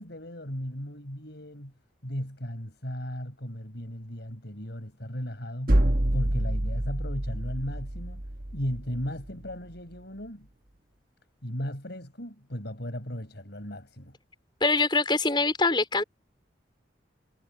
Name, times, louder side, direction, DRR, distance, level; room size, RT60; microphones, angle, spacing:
voice 1, 0.0-1.7 2.0-5.8 6.1-8.2 8.5-10.5 11.4-14.1, equal, 65° left, 5.8 m, -36 dB
sound 1, 5.7-9.5, right 1 dB, 50° right, 1.4 m, -27 dB
voice 2, 14.6-16.0, left 3 dB, 25° left, 4.3 m, -24 dB
head